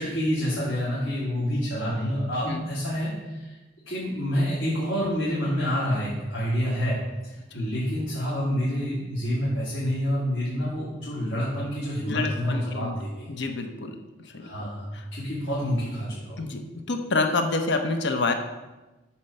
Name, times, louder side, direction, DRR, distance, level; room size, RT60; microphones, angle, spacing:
voice 1, 0.0-3.6 3.9-7.0 7.2-13.3 14.4-16.4, equal, 80° left, -9 dB, 2.7 m, -28 dB
voice 2, 12.0-13.0 13.3-14.0 14.2-14.7 14.9-15.1 16.4-16.6 16.9-18.3, left 3 dB, 65° left, 6 dB, 0.8 m, -27 dB
8.6 x 4.4 x 6.5 m, 1.1 s
head